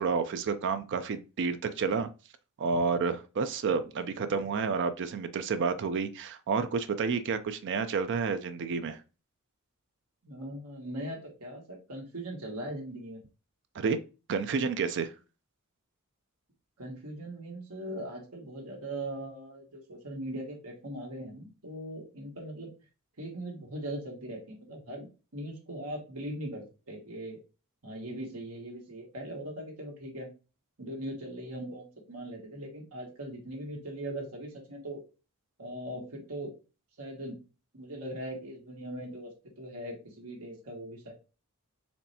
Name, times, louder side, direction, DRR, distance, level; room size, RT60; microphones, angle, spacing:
voice 1, 0.0-2.1 2.6-9.0 13.8-14.0 14.3-15.1, right 5 dB, 55° right, 0.4 m, -30 dB
voice 2, 10.2-13.2 16.8-22.7 23.2-25.1 25.3-27.4 27.8-30.3 30.8-35.0 35.6-36.5 37.0-37.4 37.7-39.3 39.6-41.1, right 1 dB, 85° right, 1.5 m, -40 dB
4.3 x 3.2 x 2.7 m
head